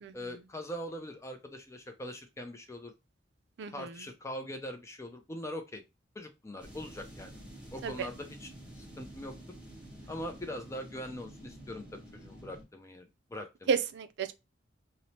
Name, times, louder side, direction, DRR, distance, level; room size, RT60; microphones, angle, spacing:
voice 1, 0.1-2.9 3.7-5.8 6.2-7.3 7.7-9.3 10.1-13.8, equal, 15° left, 0.4 m, -42 dB
sound 1, 6.6-12.6, equal, 5° right, 1.1 m, -49 dB
voice 2, 13.7-14.3, right 6 dB, 65° right, 0.4 m, -31 dB
3.0 x 2.0 x 2.7 m
head